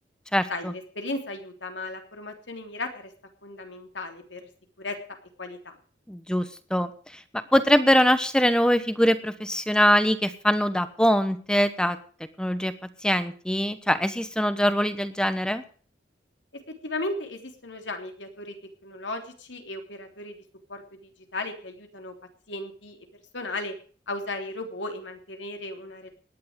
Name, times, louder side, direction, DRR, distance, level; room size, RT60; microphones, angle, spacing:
voice 1, 0.5-3.1 3.4-4.5 4.8-5.0 5.4-5.8 16.5-18.5 18.8-20.4 20.7-20.8 21.3-22.1 22.5-23.0 23.3-23.7 24.1-26.1, left 2 dB, 85° left, 5 dB, 3.4 m, -35 dB
voice 2, 6.1-6.9 7.5-12.0 12.4-12.7 13.0-15.6, equal, 5° left, 11 dB, 1.1 m, -22 dB
18.0 x 10.5 x 5.1 m, 0.43 s
head